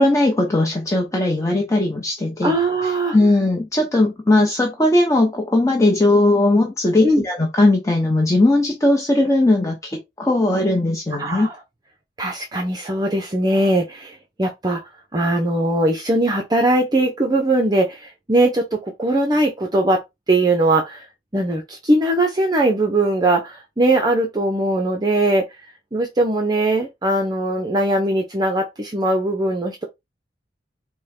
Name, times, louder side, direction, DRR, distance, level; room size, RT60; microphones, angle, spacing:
voice 1, 0.0-2.5 3.1-11.5, left 2 dB, 20° left, 0.8 m, -18 dB
voice 2, 2.4-3.2 7.0-7.2 11.1-11.6 12.2-14.8 15.1-20.0 20.3-21.1 21.3-25.6 25.9-29.8, right 1 dB, 25° right, 0.7 m, -20 dB
5.4 x 2.2 x 4.3 m
head